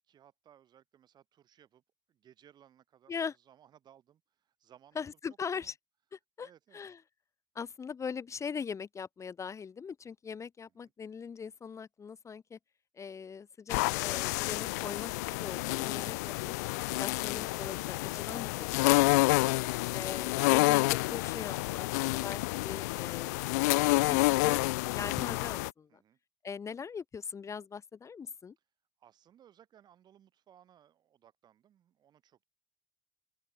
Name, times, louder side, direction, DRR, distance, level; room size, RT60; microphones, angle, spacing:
voice 1, 0.0-1.8 2.1-5.0 5.5-5.7 6.4-6.8 10.7-10.9 20.3-20.8 25.9-26.2 29.0-32.4, right 10 dB, 55° right, 7.3 m, -62 dB
voice 2, 4.9-5.7 6.1-7.0 7.5-12.6 12.9-16.5 17.0-19.5 19.9-26.0 26.4-28.5, left 6 dB, 35° left, 1.6 m, -41 dB
sound 1, 13.7-25.7, left 23 dB, 90° left, 0.6 m, -29 dB
open air
supercardioid pair, 75°, 9 cm